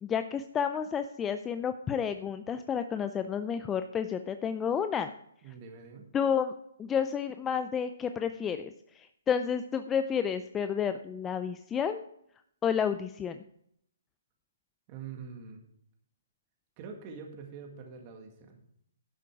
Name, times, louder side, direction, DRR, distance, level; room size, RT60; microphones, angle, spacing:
voice 1, 0.0-5.1 6.1-6.5 6.8-12.1 12.6-13.4, left 7 dB, 15° left, 9 dB, 0.4 m, -31 dB
voice 2, 5.4-6.1 14.9-15.6 16.8-18.6, right 6 dB, 35° right, 3 dB, 1.8 m, -45 dB
11.5 x 7.6 x 4.7 m, 0.72 s
hypercardioid pair, 145°, 0 cm